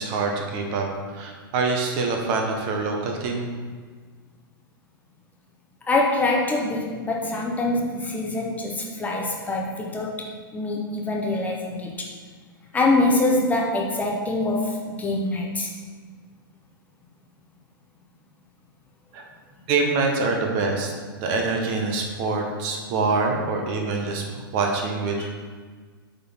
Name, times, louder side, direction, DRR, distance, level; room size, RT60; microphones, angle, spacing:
voice 1, 0.0-3.5 19.1-19.2 19.7-20.9 21.2-25.3, right 3 dB, 40° right, 2 dB, 1.1 m, -25 dB
voice 2, 5.9-12.1 12.7-15.7 25.2-25.3, left 2 dB, 15° left, -1 dB, 0.9 m, -24 dB
8.4 x 3.9 x 4.4 m, 1.5 s
figure-of-eight pair, 105°, 12 cm